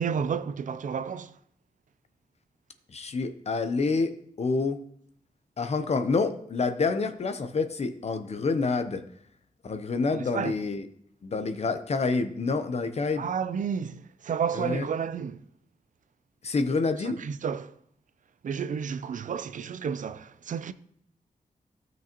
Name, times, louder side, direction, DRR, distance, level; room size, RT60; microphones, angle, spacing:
voice 1, 0.0-1.3 10.1-10.5 13.2-15.4 17.0-17.7 18.4-20.7, right 7 dB, 65° right, 0.5 m, -31 dB
voice 2, 2.9-4.8 5.6-9.0 9.6-10.8 11.2-13.2 14.5-14.8 16.4-17.2, left 4 dB, 45° left, 0.7 m, -28 dB
15.0 x 6.1 x 2.9 m
wide cardioid pair, 135°, 14 cm